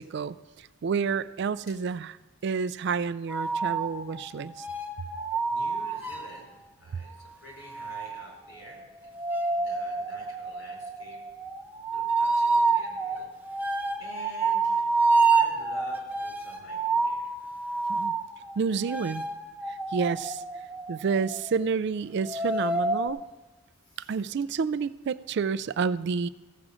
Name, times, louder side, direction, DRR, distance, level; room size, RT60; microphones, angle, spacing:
voice 1, 0.0-2.1 2.4-4.7 17.9-18.1 18.6-19.2 19.7-20.4 20.9-23.2 24.0-26.3, right 5 dB, 55° right, 16 dB, 0.3 m, -29 dB
sound 1, 3.3-6.4 7.7-21.6 22.2-23.1, right 3 dB, 10° right, 0.7 m, -28 dB
voice 2, 5.5-9.1 9.5-11.2 11.9-13.3 14.0-14.9 15.3-17.4 23.8-24.2, equal, 70° left, -1 dB, 4.1 m, -49 dB
15.5 x 7.6 x 5.0 m, 1.1 s
head